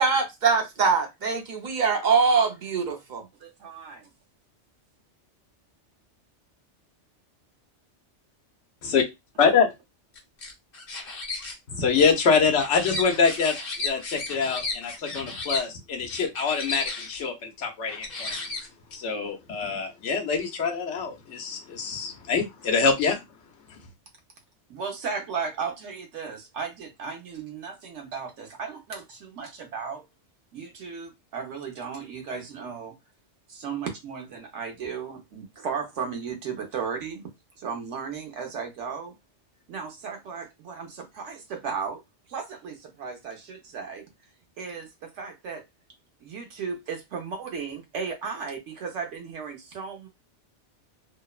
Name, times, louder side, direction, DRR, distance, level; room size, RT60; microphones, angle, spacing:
voice 1, 0.0-2.9, right 5 dB, 50° right, 0.7 m, -22 dB
voice 2, 3.4-4.1 24.7-30.0 30.5-32.9 33.5-37.2 37.6-39.1 39.7-42.0 42.3-44.0 44.6-45.6 46.2-50.1, right 6 dB, 80° right, 1.0 m, -35 dB
sound 1, 10.1-11.5 12.0-15.6 16.1-17.2 17.9-18.9, left 3 dB, 55° left, 1.1 m, -34 dB
voice 3, 11.7-18.4 18.9-23.2, left 5 dB, 75° left, 1.0 m, -25 dB
2.9 x 2.0 x 2.3 m
omnidirectional pair, 1.2 m